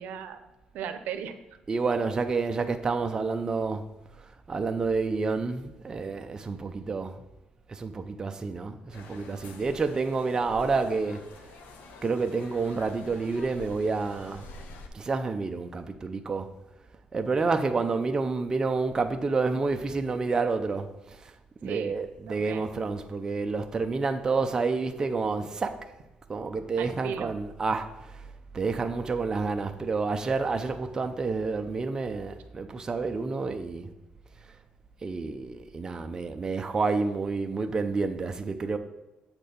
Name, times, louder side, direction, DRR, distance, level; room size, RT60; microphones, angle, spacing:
voice 1, 0.0-1.4 21.6-22.0 22.3-22.6 26.8-27.3, right 8 dB, 85° right, 0.6 m, -37 dB
voice 2, 1.7-3.8 4.2-7.2 7.7-11.2 12.0-14.5 14.9-16.5 17.1-21.3 21.6-25.8 26.3-33.9 35.0-38.8, right 4 dB, 25° right, 0.5 m, -29 dB
sound 1, 8.9-14.9, left 3 dB, 85° left, 0.9 m, -47 dB
7.5 x 4.4 x 5.2 m
cardioid pair, 135°, 3 cm